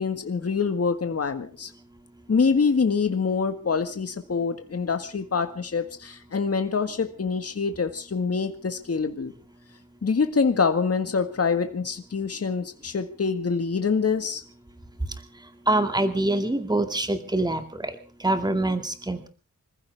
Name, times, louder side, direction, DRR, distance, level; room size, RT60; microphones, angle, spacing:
voice 1, 0.0-1.7 2.3-9.3 10.0-14.4, left 5 dB, 45° left, 8 dB, 1.7 m, -25 dB
voice 2, 15.7-19.3, right 2 dB, 10° right, 7 dB, 2.3 m, -25 dB
26.5 x 15.0 x 3.5 m, 0.36 s
wide cardioid pair, 115°, 34 cm